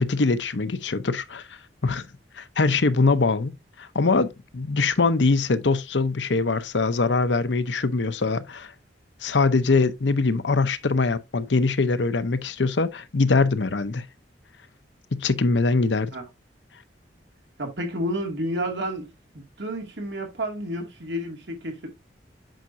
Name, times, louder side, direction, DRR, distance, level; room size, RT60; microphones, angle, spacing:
voice 1, 0.0-1.4 1.8-2.0 2.4-3.5 3.8-8.7 9.2-14.0 15.1-16.1, left 3 dB, 85° left, 0.8 m, -23 dB
voice 2, 17.6-19.1 19.6-21.9, equal, 75° right, 2.4 m, -30 dB
9.1 x 5.7 x 2.7 m
head